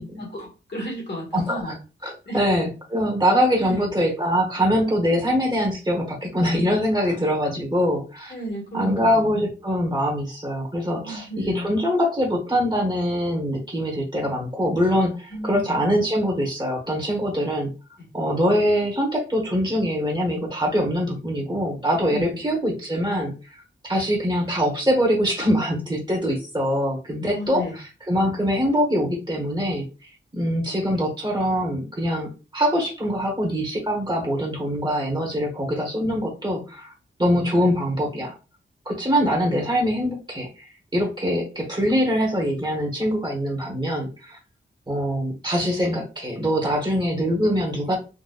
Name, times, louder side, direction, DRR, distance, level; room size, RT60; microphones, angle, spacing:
voice 1, 0.2-1.8 2.3-2.4 3.6-3.9 7.0-7.1 8.3-9.5 11.0-11.7 15.3-15.9 22.1-22.5 27.3-27.7, left 1 dB, 60° left, -1 dB, 1.6 m, -33 dB
voice 2, 1.3-1.7 2.0-8.3 8.7-17.7 18.1-36.9 37.2-38.3 38.8-44.4 44.9-48.0, equal, 20° right, -1 dB, 1.2 m, -23 dB
3.9 x 2.4 x 2.3 m, 0.33 s
wide cardioid pair, 110°, 20 cm